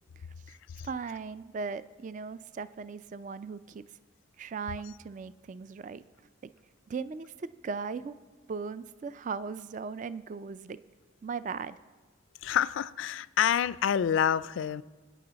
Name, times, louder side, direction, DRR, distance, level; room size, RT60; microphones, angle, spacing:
voice 1, 0.8-3.8 4.4-6.0 6.4-6.5 6.9-8.2 8.5-10.8 11.2-11.8, right 5 dB, 40° right, 15 dB, 0.3 m, -38 dB
voice 2, 12.4-14.8, left 8 dB, 80° left, 18 dB, 0.3 m, -27 dB
20.0 x 9.3 x 4.0 m, 1.3 s
head